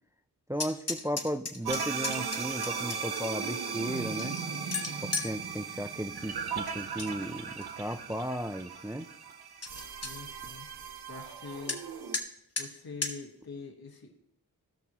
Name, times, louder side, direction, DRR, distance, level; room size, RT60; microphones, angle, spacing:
sound 1, 0.5-3.2 3.7-5.3 6.7-7.1 7.5-8.0 8.5-8.6 8.9-9.0 9.3-9.4 9.6-10.1 11.7-11.8 12.1-12.2 12.6-12.7 13.0-13.1, left 3 dB, 40° left, 1.2 m, -35 dB
voice 1, 0.5-4.4 5.0-9.1, equal, 10° right, 9 dB, 0.3 m, -35 dB
sound 2, 1.6-12.2, right 6 dB, 80° right, 0.9 m, -37 dB
voice 2, 9.9-10.7 11.1-11.8 12.6-14.2, left 5 dB, 70° left, 1 dB, 1.6 m, -44 dB
17.0 x 6.1 x 3.0 m, 0.81 s
wide cardioid pair, 110°, 38 cm